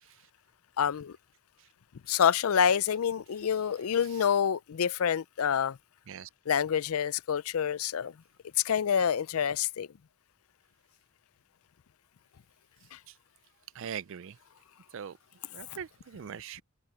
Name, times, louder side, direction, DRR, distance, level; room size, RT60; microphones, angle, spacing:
voice 1, 0.8-1.2 2.1-5.8 6.5-8.1 8.6-9.9 12.9-13.0 15.7-15.8, left 8 dB, 75° left, 0.5 m, -27 dB
voice 2, 13.8-14.4 14.9-15.2 15.5-16.6, right 8 dB, 60° right, 0.4 m, -40 dB
head